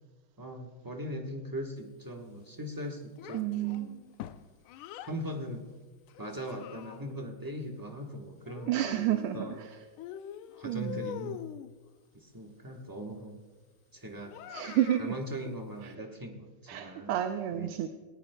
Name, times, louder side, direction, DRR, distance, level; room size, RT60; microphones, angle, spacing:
voice 1, 0.4-3.8 5.0-5.7 6.2-8.7 9.1-9.6 10.6-11.4 12.1-13.4 13.9-14.4 15.0-17.2 17.5-17.7, equal, 25° right, 1 dB, 0.5 m, -40 dB
Child speech kid speaking, 3.2-5.2 6.1-7.3 8.5-9.6 10.0-11.7 14.3-15.1, left 10 dB, 80° left, 1.4 m, -44 dB
voice 2, 3.3-4.0 8.7-9.8 10.6-11.1 14.5-15.1 15.8-15.9 16.7-17.9, right 12 dB, 90° right, 6 dB, 1.6 m, -31 dB
19.0 x 18.0 x 2.2 m, 1.3 s
omnidirectional pair, 2.4 m